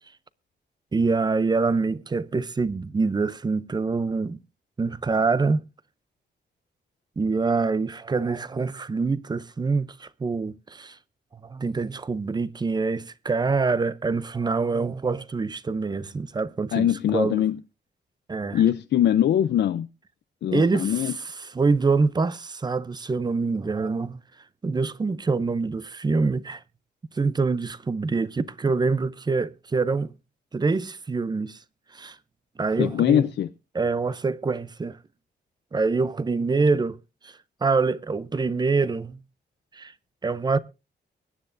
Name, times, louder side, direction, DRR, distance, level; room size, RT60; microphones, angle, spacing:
voice 1, 0.9-4.4 4.8-5.7 7.2-11.0 11.4-16.9 17.1-17.4 18.3-18.6 20.5-21.2 21.5-24.2 24.6-26.6 27.1-30.1 30.5-31.6 31.9-32.2 32.6-33.3 33.7-35.0 35.7-37.0 37.2-37.3 37.6-39.2 39.7-39.9 40.2-40.6, right 4 dB, 25° right, 0.6 m, -25 dB
voice 2, 16.7-17.6 18.5-19.9 20.4-21.1 32.8-33.5, left 10 dB, 75° left, 0.5 m, -22 dB
23.5 x 9.9 x 2.6 m
wide cardioid pair, 135°, 18 cm